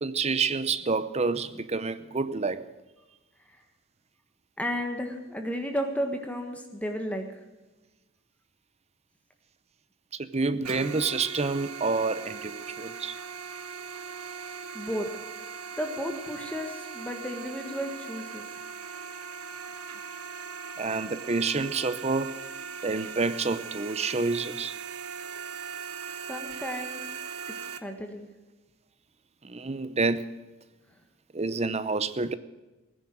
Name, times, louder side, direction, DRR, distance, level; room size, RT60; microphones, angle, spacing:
voice 1, 0.0-2.6 10.2-13.2 20.8-22.4 22.8-24.7 29.4-30.3 31.3-32.3, right 4 dB, 30° right, 0.7 m, -28 dB
voice 2, 4.6-7.3 14.7-15.1 15.8-18.4 26.3-27.1 27.8-28.3, equal, 5° left, 1.5 m, -33 dB
sound 1, 10.6-27.8, right 6 dB, 80° right, 1.2 m, -39 dB
18.5 x 10.0 x 7.7 m
head